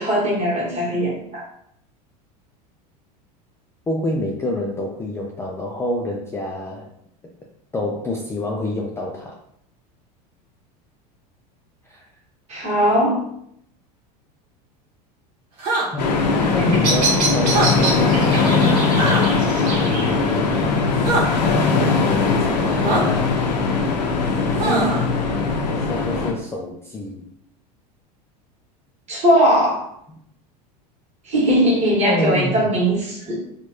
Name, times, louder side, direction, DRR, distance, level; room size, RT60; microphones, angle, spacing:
voice 1, 0.0-1.4 12.5-13.2 24.6-25.0 29.1-29.9 31.2-33.4, equal, 30° right, -4 dB, 1.4 m, -19 dB
voice 2, 3.9-6.9 7.7-9.4 11.9-12.0 15.9-18.8 19.8-20.7 22.0-23.4 25.7-27.3 30.1-30.2 32.0-32.7, left 1 dB, 10° left, -1 dB, 0.3 m, -27 dB
sound 1, 15.6-15.9 17.4-17.7 19.0-19.2 21.0-21.2 22.8-23.0 24.6-25.0, right 3 dB, 50° right, 1.1 m, -21 dB
sound 2, 16.0-26.3, left 4 dB, 85° left, 0.6 m, -20 dB
Bird vocalization bird call bird song, 16.3-22.3, right 2 dB, 70° right, 0.9 m, -28 dB
3.1 x 2.4 x 2.6 m, 0.71 s
hypercardioid pair, 100°, 21 cm